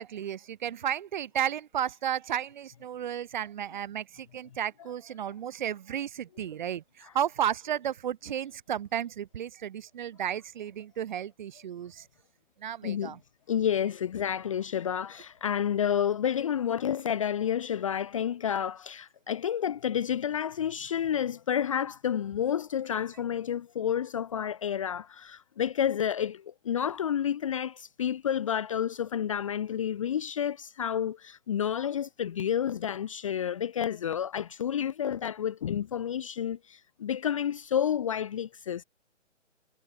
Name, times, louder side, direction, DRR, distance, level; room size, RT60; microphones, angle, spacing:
voice 1, 0.0-12.1 12.6-13.2, right 10 dB, 40° right, 4.5 m, -33 dB
voice 2, 12.8-13.1 13.5-38.8, left 9 dB, 25° left, 0.9 m, -30 dB
hypercardioid pair, 155°, 37 cm